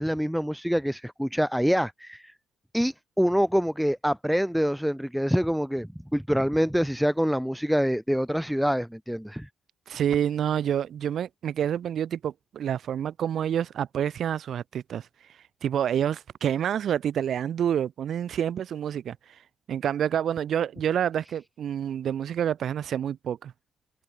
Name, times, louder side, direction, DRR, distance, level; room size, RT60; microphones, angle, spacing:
voice 1, 0.0-2.3 2.7-9.5, equal, ahead, 1.2 m, -26 dB
voice 2, 9.9-15.1 15.6-19.4 19.7-23.5, right 9 dB, 65° right, 0.7 m, -28 dB
cardioid pair, 90°, 0 cm